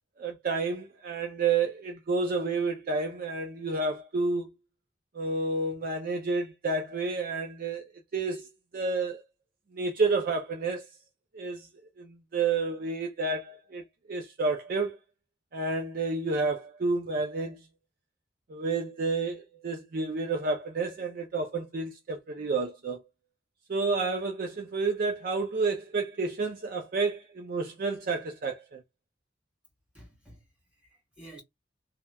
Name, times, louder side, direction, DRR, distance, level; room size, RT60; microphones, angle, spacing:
voice 1, 0.2-4.5 5.1-7.9 8.1-9.2 9.7-10.9 11.3-11.7 12.0-15.0 15.5-17.6 18.5-23.0 23.7-28.8, right 3 dB, 50° right, 0.4 m, -30 dB
voice 2, 29.9-31.4, right 1 dB, 5° right, 1.6 m, -52 dB
2.9 x 2.1 x 2.2 m
head